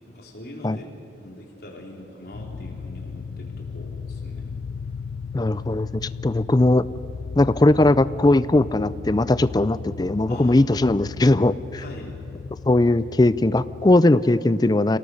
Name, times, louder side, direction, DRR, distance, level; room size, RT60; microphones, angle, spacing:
voice 1, 0.1-0.9 1.2-4.5 10.3-10.7 11.8-12.2, left 1 dB, 55° left, -1 dB, 4.1 m, -42 dB
sound 1, 2.3-14.0, left 5 dB, 85° left, 0.5 m, -36 dB
voice 2, 5.3-6.9 7.4-11.8 12.7-15.0, left 2 dB, 20° left, 16 dB, 0.4 m, -19 dB
27.5 x 18.0 x 6.5 m, 2.8 s
head